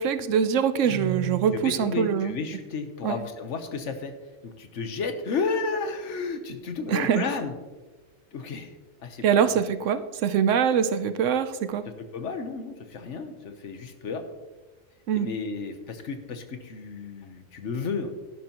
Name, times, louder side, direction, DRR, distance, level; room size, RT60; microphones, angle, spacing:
voice 1, 0.0-2.3 3.0-3.2 6.9-7.2 9.2-11.8 15.1-15.3, right 7 dB, 75° right, 12 dB, 1.0 m, -23 dB
Guitar, 0.8-2.1, right 8 dB, 25° right, 1.4 m, -35 dB
voice 2, 1.5-4.1 4.4-7.5 8.3-8.7 9.0-9.3 12.1-14.3 15.1-18.1, left 4 dB, 65° left, 8 dB, 1.3 m, -32 dB
12.5 x 11.0 x 3.0 m, 1.2 s
omnidirectional pair, 1.3 m